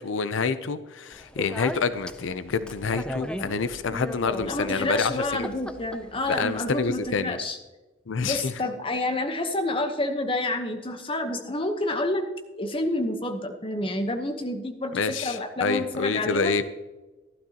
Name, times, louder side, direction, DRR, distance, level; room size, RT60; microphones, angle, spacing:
voice 1, 0.0-5.5 6.3-7.4 8.1-8.5 14.9-16.6, left 5 dB, 85° left, 13 dB, 0.5 m, -27 dB
Speech, 1.1-7.2, equal, 5° left, 0.5 m, -38 dB
voice 2, 4.4-7.6 8.2-12.3 12.6-16.5, left 2 dB, 30° left, 5 dB, 1.0 m, -29 dB
15.5 x 12.0 x 2.9 m, 1.2 s
head